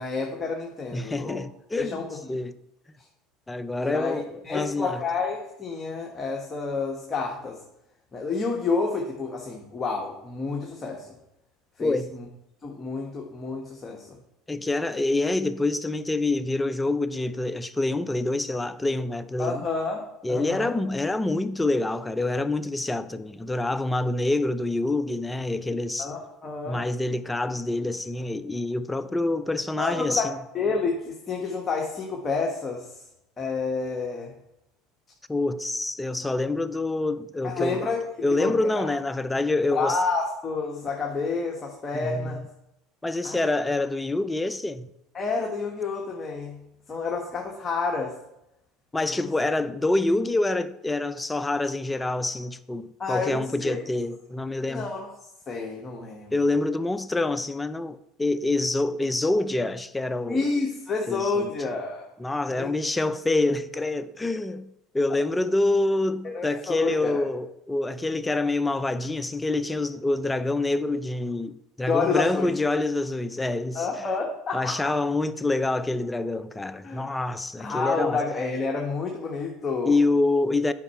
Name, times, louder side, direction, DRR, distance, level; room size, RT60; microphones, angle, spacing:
voice 1, 0.0-1.4 1.8-2.1 3.8-7.6 8.1-11.1 11.8-11.9 12.6-14.2 19.4-20.0 20.3-20.7 26.0-26.8 29.8-32.9 33.4-34.3 37.4-38.0 38.4-38.9 39.7-42.4 43.2-43.8 45.1-46.6 46.9-48.2 49.1-49.3 53.0-53.7 54.7-55.1 55.5-56.3 60.3-62.1 62.5-62.7 66.2-67.2 71.9-72.5 73.7-74.9 76.8-77.1 77.6-80.0, left 4 dB, 30° left, 1.4 m, -29 dB
voice 2, 0.9-2.0 2.3-2.5 3.5-5.0 11.8-12.1 14.5-19.6 20.2-26.1 26.7-30.4 35.3-37.8 38.2-40.0 41.9-42.4 43.0-44.9 48.9-54.9 56.3-60.4 61.1-61.5 62.2-64.7 64.9-73.9 74.5-78.2 79.9-80.7, left 2 dB, 10° left, 0.5 m, -26 dB
9.2 x 5.6 x 4.3 m
hypercardioid pair, 85°, 0 cm